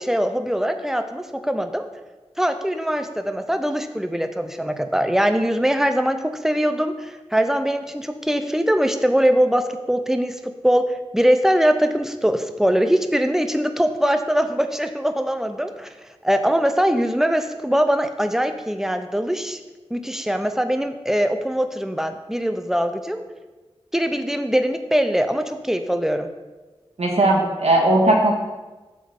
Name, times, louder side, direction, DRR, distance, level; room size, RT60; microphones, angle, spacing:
voice 1, 0.0-1.9 2.4-15.9 16.2-19.6 19.9-23.2 23.9-26.3, equal, 5° right, 8 dB, 0.5 m, -22 dB
voice 2, 27.0-28.3, right 1 dB, 90° right, -1 dB, 1.4 m, -17 dB
7.9 x 3.7 x 6.4 m, 1.2 s
wide cardioid pair, 80°, 11 cm